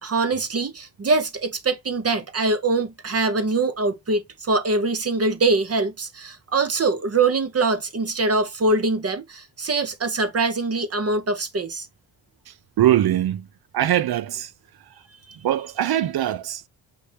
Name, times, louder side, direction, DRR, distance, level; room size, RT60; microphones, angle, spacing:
voice 1, 0.0-11.9, right 3 dB, 35° right, 0.9 m, -23 dB
voice 2, 12.5-13.5 13.7-14.5 15.4-16.7, right 12 dB, 60° right, 0.6 m, -22 dB
5.0 x 2.8 x 3.3 m
cardioid pair, 70°, 42 cm